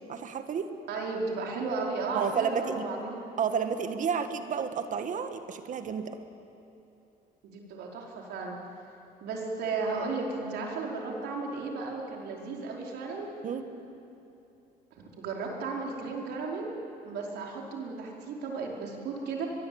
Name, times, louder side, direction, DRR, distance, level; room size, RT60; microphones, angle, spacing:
voice 1, 0.1-0.7 2.1-2.9 3.4-6.2 13.4-13.6, right 7 dB, 50° right, 8 dB, 1.7 m, -31 dB
voice 2, 0.9-3.2 7.4-8.6 9.2-13.3 15.0-16.7 17.0-19.5, right 4 dB, 75° right, -1 dB, 4.8 m, -34 dB
23.0 x 22.5 x 8.8 m, 2.8 s
cardioid pair, 110°, 17 cm